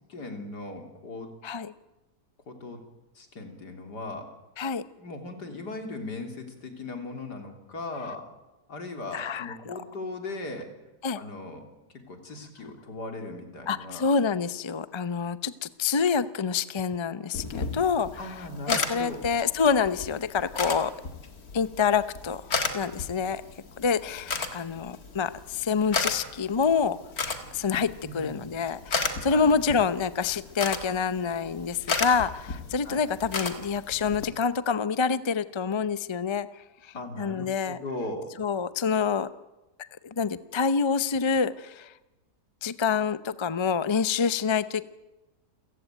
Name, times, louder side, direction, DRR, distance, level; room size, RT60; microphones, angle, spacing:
voice 1, 0.1-1.3 2.5-2.8 3.2-4.3 5.0-8.3 8.7-10.7 11.1-11.6 12.1-14.1 18.2-19.2 28.0-28.4 29.3-29.5 32.8-33.0 36.9-38.3, left 2 dB, 75° left, 5 dB, 3.9 m, -38 dB
voice 2, 9.1-9.5 11.0-11.2 13.7-18.1 18.7-20.9 21.5-22.4 22.7-23.4 23.8-27.0 27.5-36.5 36.8-37.8 38.4-39.3 40.0-41.9 42.6-44.8, left 5 dB, 35° left, 14 dB, 0.4 m, -27 dB
sound 1, 17.3-34.3, left 4 dB, 60° left, 2.3 m, -34 dB
29.0 x 15.5 x 9.2 m, 1.1 s
omnidirectional pair, 1.8 m